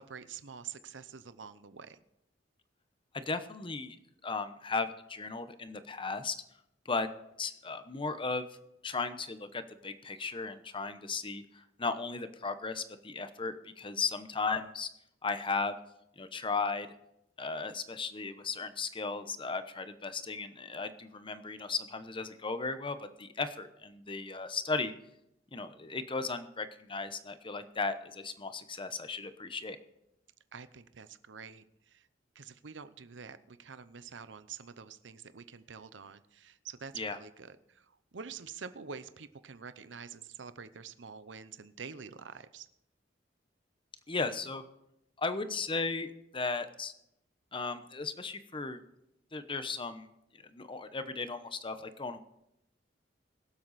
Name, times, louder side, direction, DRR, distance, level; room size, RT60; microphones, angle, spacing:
voice 1, 0.0-2.0 30.5-32.1 32.3-42.7, right 6 dB, 75° right, 13 dB, 0.8 m, -47 dB
voice 2, 3.1-4.0 4.2-6.4 6.8-7.1 7.4-8.5 8.8-14.9 15.2-15.8 16.2-16.9 17.4-24.9 25.5-29.8 36.9-37.2 44.1-44.6 45.2-46.9 47.5-48.8 49.3-50.1 50.3-52.2, left 4 dB, 30° left, 10 dB, 0.9 m, -36 dB
22.5 x 7.8 x 4.2 m, 0.81 s
head